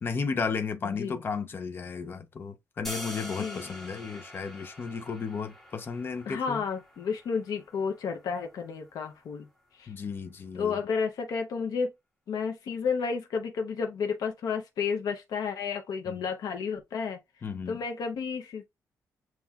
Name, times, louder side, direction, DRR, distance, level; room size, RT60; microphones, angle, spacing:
voice 1, 0.0-6.6 9.9-10.8 16.1-16.2 17.4-17.8, left 5 dB, 35° left, 0.5 m, -34 dB
voice 2, 0.8-1.2 3.2-3.7 6.3-9.5 9.7-9.9 10.5-11.9 12.3-17.2 17.7-18.7, left 5 dB, 75° left, 0.7 m, -31 dB
sound 1, 2.8-8.9, left 1 dB, 5° left, 1.6 m, -45 dB
7.2 x 3.0 x 2.3 m
wide cardioid pair, 160°, 7 cm